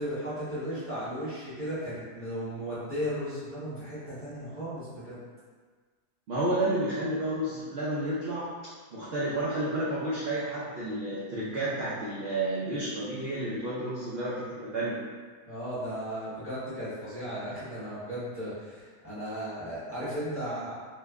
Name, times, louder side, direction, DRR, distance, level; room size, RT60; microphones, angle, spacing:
voice 1, 0.0-5.2 15.5-20.7, equal, 10° left, -13 dB, 0.8 m, -35 dB
voice 2, 6.3-8.5 8.9-15.0, right 1 dB, 70° right, -8 dB, 0.5 m, -31 dB
3.1 x 2.2 x 3.5 m, 1.5 s
omnidirectional pair, 1.7 m